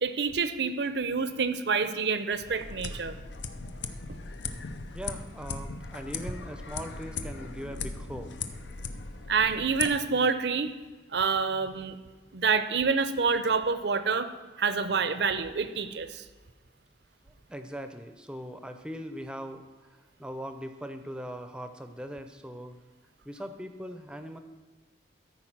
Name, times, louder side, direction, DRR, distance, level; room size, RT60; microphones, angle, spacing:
voice 1, 0.0-3.2 9.3-10.7 11.1-12.0 12.3-14.3 14.6-16.2, right 5 dB, 70° right, 11 dB, 0.6 m, -27 dB
sound 1, 2.5-9.9, left 5 dB, 80° left, 0.6 m, -38 dB
voice 2, 4.9-8.3 17.2-19.6 20.2-22.8 23.2-24.4, equal, 5° right, 7 dB, 0.5 m, -40 dB
14.0 x 4.7 x 5.9 m, 1.3 s
head